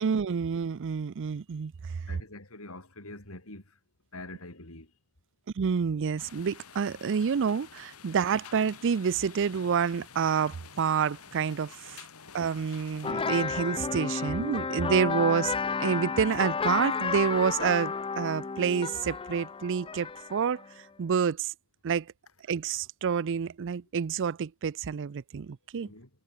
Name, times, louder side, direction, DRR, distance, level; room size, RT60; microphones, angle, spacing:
voice 1, 0.0-1.7 5.6-12.0 12.3-15.5 15.8-20.6 21.0-21.5 21.8-22.1 22.5-25.9, right 6 dB, 60° right, 0.4 m, -28 dB
voice 2, 2.1-3.6 4.1-4.9 25.8-26.1, left 2 dB, 70° left, 6.2 m, -44 dB
sound 1, 6.2-13.1, left 7 dB, 85° left, 2.3 m, -50 dB
sound 2, 13.0-20.7, left 5 dB, 25° left, 0.5 m, -32 dB
head